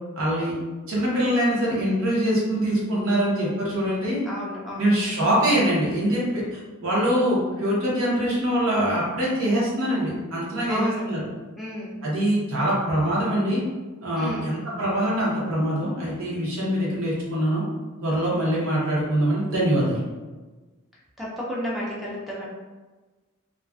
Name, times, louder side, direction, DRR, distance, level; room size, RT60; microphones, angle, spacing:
voice 1, 0.1-0.5 0.9-4.2 4.8-11.2 12.0-13.6 14.0-17.6 18.0-20.0, equal, 70° right, -6 dB, 0.8 m, -24 dB
voice 2, 4.3-4.9 10.7-11.1 11.6-12.0 14.2-14.5 18.3-18.5 21.2-22.5, equal, ahead, -7 dB, 0.4 m, -31 dB
2.4 x 2.2 x 2.3 m, 1.3 s
head